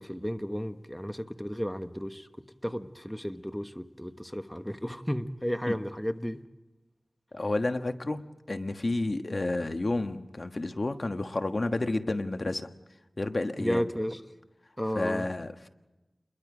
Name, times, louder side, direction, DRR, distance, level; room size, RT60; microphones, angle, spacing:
voice 1, 0.0-2.3 2.6-6.4 13.6-14.2 14.8-15.3, equal, 5° left, 8 dB, 1.2 m, -33 dB
voice 2, 7.3-8.2 8.5-12.7 13.2-13.9 14.9-15.7, left 2 dB, 50° left, 7 dB, 1.3 m, -30 dB
29.5 x 22.0 x 5.1 m, 1.1 s
wide cardioid pair, 55°, 0 cm